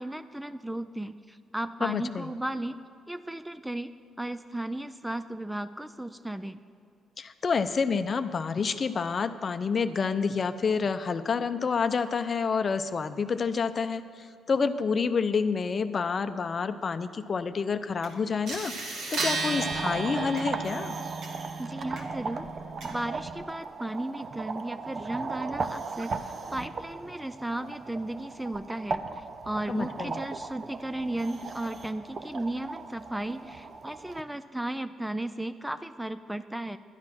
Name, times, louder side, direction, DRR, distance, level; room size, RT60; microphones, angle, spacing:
voice 1, 0.0-2.8 3.1-3.9 4.2-6.6 21.6-22.5 22.9-36.8, right 1 dB, 5° right, 11 dB, 0.4 m, -35 dB
voice 2, 1.8-2.3 7.2-21.0 29.7-30.2, left 5 dB, 40° left, 10 dB, 0.6 m, -28 dB
sound 1, 18.0-18.1 18.5-23.4, right 3 dB, 75° right, 2.0 m, -35 dB
sound 2, 19.5-34.2, right 4 dB, 45° right, 0.7 m, -37 dB
11.5 x 9.7 x 6.0 m, 2.3 s
cardioid pair, 90°, 0 cm